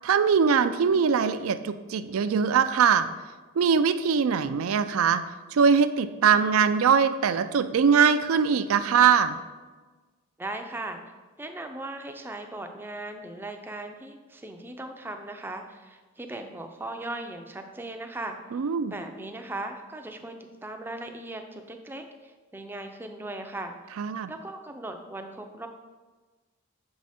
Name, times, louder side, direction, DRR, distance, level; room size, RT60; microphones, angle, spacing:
voice 1, 0.0-3.1 3.6-5.2 5.5-9.4 18.5-18.9 24.0-24.3, right 6 dB, 80° right, 11 dB, 0.4 m, -22 dB
voice 2, 10.4-11.0 11.4-18.4 18.9-20.3 20.6-23.7 24.3-25.7, right 2 dB, 10° right, 4 dB, 0.4 m, -38 dB
6.6 x 4.7 x 4.2 m, 1.3 s
head